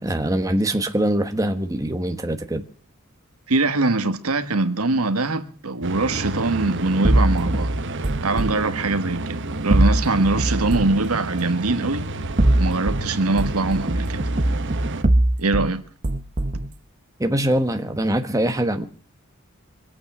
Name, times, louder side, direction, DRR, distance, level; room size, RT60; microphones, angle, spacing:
voice 1, 0.0-2.6 17.2-18.9, right 1 dB, 15° right, 1.2 m, -23 dB
voice 2, 3.5-7.7 8.2-12.0 12.5-14.2 15.4-15.8, right 3 dB, 80° right, 1.4 m, -23 dB
sound 1, 5.8-15.0, right 2 dB, 60° right, 1.1 m, -30 dB
sound 2, 7.0-8.6 9.7-11.0 12.2-13.0 13.4-15.7 16.0-16.7, right 1 dB, 35° right, 0.9 m, -21 dB
24.5 x 8.7 x 6.0 m
head